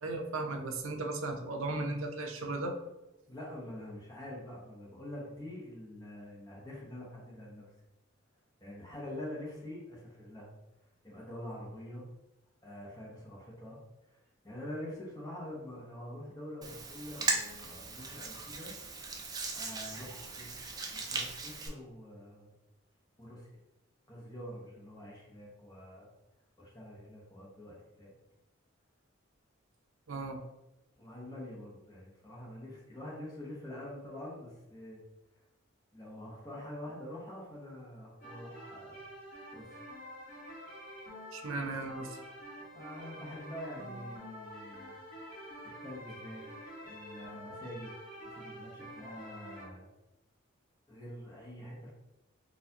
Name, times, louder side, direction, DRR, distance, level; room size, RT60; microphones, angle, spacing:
voice 1, 0.0-2.7 30.1-30.4 41.3-42.2, right 2 dB, 80° right, 3 dB, 0.6 m, -36 dB
voice 2, 3.3-7.7 8.6-10.5 11.0-12.0 12.6-13.8 14.1-18.7 19.5-22.5 23.2-23.5 24.1-26.1 26.6-28.1 31.0-35.0 35.9-39.0 39.5-39.8 42.7-45.0 45.8-46.4 46.8-47.9 48.2-49.9 50.9-51.9, left 1 dB, 20° left, -5 dB, 0.8 m, -45 dB
Hands, 16.6-21.7, right 3 dB, 20° right, 0.4 m, -38 dB
sound 1, 38.2-49.7, equal, 45° left, 1.4 m, -48 dB
4.2 x 2.5 x 2.7 m, 0.97 s
head